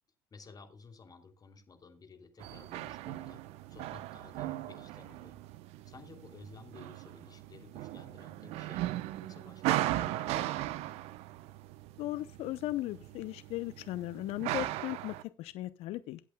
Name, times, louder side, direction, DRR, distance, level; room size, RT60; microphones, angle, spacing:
voice 1, 0.3-3.4 3.7-5.4 5.8-10.8, left 4 dB, 35° left, 6 dB, 2.9 m, -54 dB
sound 1, 2.4-15.2, right 15 dB, 65° right, 0.8 m, -38 dB
voice 2, 12.0-16.2, left 16 dB, 60° left, 15 dB, 0.6 m, -37 dB
22.0 x 8.3 x 2.2 m, 0.30 s
hypercardioid pair, 65°, 11 cm